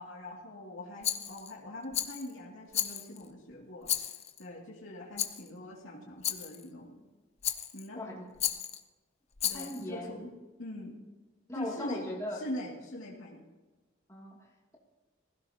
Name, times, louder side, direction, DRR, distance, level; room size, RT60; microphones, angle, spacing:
voice 1, 0.0-3.9 4.4-7.0 7.7-8.0 9.4-10.2 10.6-11.0 11.5-12.0 12.3-13.4, left 1 dB, 85° left, -3 dB, 2.4 m, -43 dB
Rattle, 1.0-1.5 1.9-2.3 2.7-3.3 3.8-4.4 5.2-5.5 6.2-6.6 7.4-7.9 8.4-8.8 9.4-9.8, left 10 dB, 30° left, 0.6 m, -34 dB
voice 2, 7.9-8.3 9.5-10.3 11.5-12.4 14.1-14.5, left 1 dB, 15° left, -3 dB, 2.5 m, -39 dB
20.5 x 16.0 x 2.9 m, 1.2 s
head